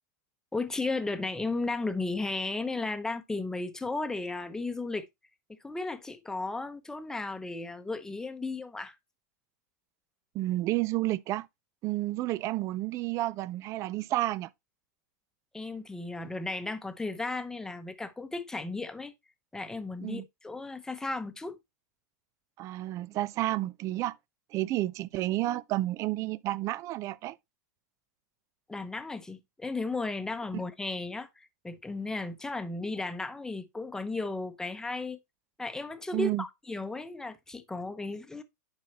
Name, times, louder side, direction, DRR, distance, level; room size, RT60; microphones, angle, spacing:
voice 1, 0.5-5.1 5.6-9.0 15.5-19.1 19.5-21.6 28.7-35.2 35.6-38.4, left 3 dB, 5° left, 0.9 m, -35 dB
voice 2, 10.3-11.5 11.8-14.5 20.0-20.2 22.6-24.2 24.5-27.4 36.1-36.4, right 16 dB, 35° right, 0.5 m, -31 dB
10.5 x 4.7 x 2.9 m
hypercardioid pair, 130°, 9 cm